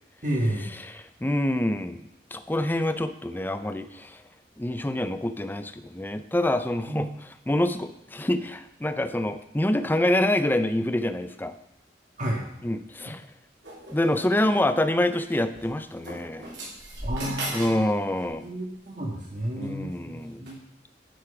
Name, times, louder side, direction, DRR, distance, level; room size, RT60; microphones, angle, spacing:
voice 1, 0.2-0.7 6.9-7.1 12.2-12.4 17.0-17.9 18.4-20.6, right 1 dB, 45° right, -1 dB, 1.7 m, -31 dB
voice 2, 0.9-2.0 2.3-4.2 4.6-7.1 7.5-11.5 12.6-13.2 13.9-16.5 17.5-18.5 19.6-20.5, left 1 dB, 10° left, 9 dB, 0.5 m, -26 dB
sound 1, 13.6-14.6 15.5-15.6 16.0-17.8 18.1-18.4 19.3-19.6 20.4-20.5, right 1 dB, 80° right, 3.6 m, -37 dB
10.5 x 6.6 x 4.9 m, 0.82 s
head